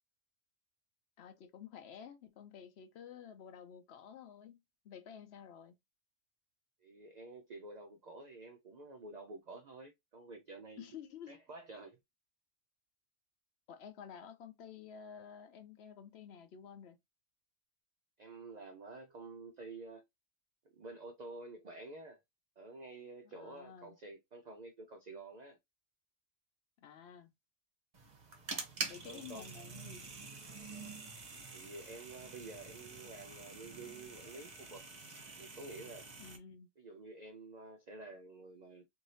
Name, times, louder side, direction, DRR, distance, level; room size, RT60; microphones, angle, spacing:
voice 1, 1.2-5.8 10.8-11.4 13.7-17.0 23.2-24.0 26.8-27.3 28.8-30.1 36.2-36.7, left 8 dB, 65° left, 0.7 m, -51 dB
voice 2, 6.8-10.9 11.3-12.0 18.2-20.1 20.7-22.2 22.6-25.6 29.0-29.5 31.5-34.9 35.4-36.1 36.8-38.8, right 3 dB, 65° right, 0.4 m, -50 dB
sound 1, 27.9-36.4, right 4 dB, 40° right, 0.9 m, -46 dB
3.2 x 2.6 x 2.6 m
omnidirectional pair, 1.3 m